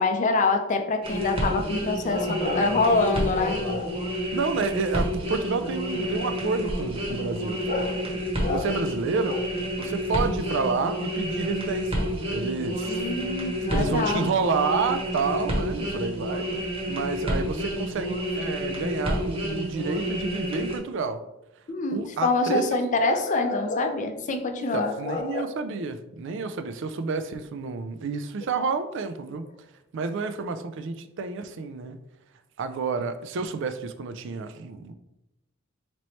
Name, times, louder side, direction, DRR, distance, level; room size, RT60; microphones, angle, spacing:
voice 1, 0.0-3.9 7.7-8.0 8.4-8.7 12.8-14.3 21.7-25.4, left 3 dB, 40° left, 5 dB, 0.5 m, -25 dB
sound 1, 1.0-20.8, equal, 30° right, 1.0 m, -29 dB
voice 2, 2.3-3.0 3.6-3.8 4.3-7.6 8.5-9.4 9.8-11.9 12.3-13.1 13.7-16.5 16.9-21.2 21.9-22.6 24.6-29.4 29.9-32.0 32.6-34.9, right 4 dB, 65° right, 10 dB, 0.4 m, -29 dB
4.1 x 3.0 x 3.1 m, 0.93 s
head